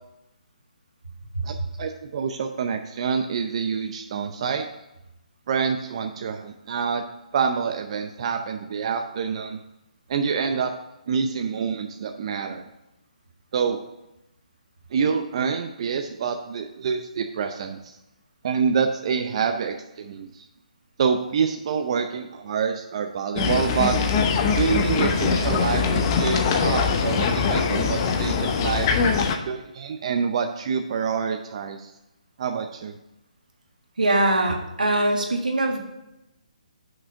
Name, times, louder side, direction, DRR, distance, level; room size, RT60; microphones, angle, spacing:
voice 1, 1.4-4.7 5.5-7.0 7.3-9.6 10.1-10.7 11.1-12.7 13.5-13.8 14.9-18.0 18.4-20.4 21.0-24.0 24.5-28.9 29.5-31.9 32.4-33.0, right 6 dB, 45° right, 5 dB, 0.6 m, -26 dB
sound 1, 23.4-29.4, left 5 dB, 35° left, 0.8 m, -22 dB
voice 2, 34.0-35.8, right 1 dB, 85° right, 2 dB, 1.6 m, -22 dB
6.2 x 4.9 x 6.3 m, 0.89 s
figure-of-eight pair, 145°, 4 cm